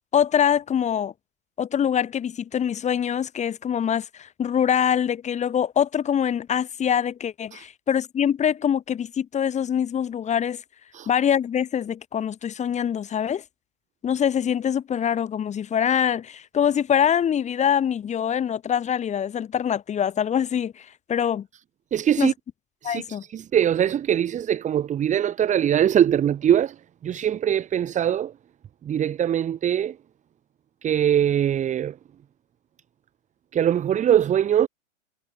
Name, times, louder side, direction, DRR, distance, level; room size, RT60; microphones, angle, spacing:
voice 1, 0.1-1.1 1.6-10.6 11.1-13.4 14.0-21.5 22.2-22.3 22.8-23.2, left 8 dB, 15° left, 3.6 m, -24 dB
voice 2, 21.9-22.3 22.8-28.3 28.8-30.0 30.8-32.0 33.5-34.7, right 10 dB, 20° right, 2.8 m, -22 dB
hypercardioid pair, 135°, 40 cm